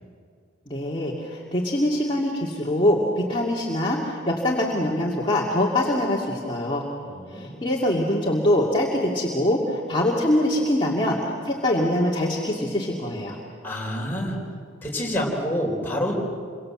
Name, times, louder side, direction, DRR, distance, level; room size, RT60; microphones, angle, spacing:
voice 1, 0.7-6.9 7.3-11.2 11.4-13.4, left 1 dB, 25° left, -4 dB, 2.4 m, -23 dB
voice 2, 7.1-7.6 13.6-14.4 14.8-16.1, equal, 10° left, -3 dB, 4.5 m, -27 dB
28.0 x 24.5 x 7.7 m, 2.2 s
head